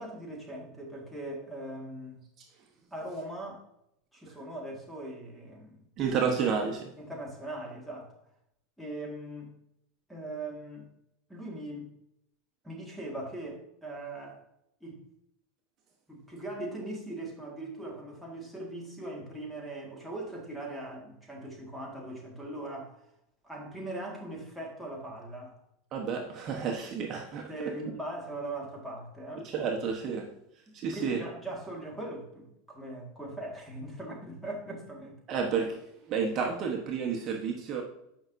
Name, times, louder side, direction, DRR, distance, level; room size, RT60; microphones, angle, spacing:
voice 1, 0.0-2.2 2.9-3.6 4.1-5.9 7.0-8.2 8.8-9.5 10.1-10.9 11.3-11.9 12.6-14.4 14.8-15.0 16.1-23.0 23.4-25.6 27.5-29.5 30.7-35.2, right 1 dB, ahead, 1.8 m, -40 dB
voice 2, 6.0-6.9 25.9-27.5 29.4-30.3 30.7-31.2 35.3-35.8 36.1-37.8, right 6 dB, 40° right, 1.0 m, -30 dB
8.7 x 5.6 x 2.6 m
supercardioid pair, 125°, 0 cm